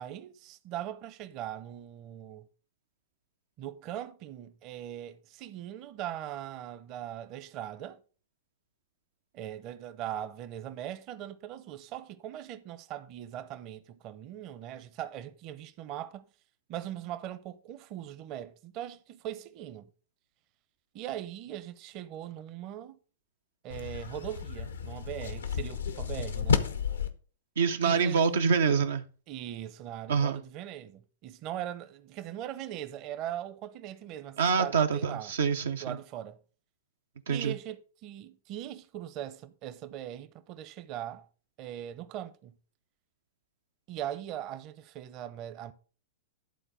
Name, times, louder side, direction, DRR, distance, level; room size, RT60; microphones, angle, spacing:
voice 1, 0.0-2.5 3.6-8.0 9.3-16.2 16.7-19.9 20.9-23.0 23.6-26.6 27.8-28.5 29.3-35.3 35.8-36.4 37.3-41.3 41.6-42.5 43.9-45.7, right 11 dB, 40° right, 0.8 m, -40 dB
sound 1, 23.7-27.1, left 6 dB, 85° left, 0.9 m, -31 dB
voice 2, 27.6-29.0 30.1-30.4 34.4-36.0 37.3-37.5, right 6 dB, 75° right, 0.6 m, -26 dB
11.5 x 4.0 x 5.0 m
hypercardioid pair, 110°, 0 cm